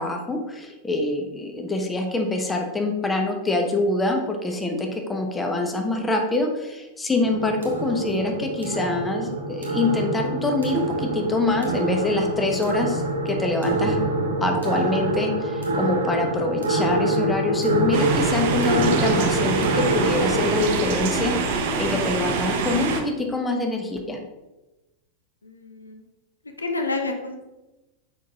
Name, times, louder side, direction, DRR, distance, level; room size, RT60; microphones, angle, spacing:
voice 1, 0.0-14.0 14.4-24.2, left 2 dB, 10° left, 3 dB, 0.8 m, -25 dB
sound 1, 7.2-20.7, right 2 dB, 70° right, 1.1 m, -25 dB
sound 2, 17.9-23.0, right 4 dB, 50° right, 0.7 m, -25 dB
voice 2, 25.4-26.0 26.6-27.4, left 3 dB, 80° left, 4 dB, 0.6 m, -29 dB
6.2 x 5.3 x 2.9 m, 1.0 s
figure-of-eight pair, 90°, 0 cm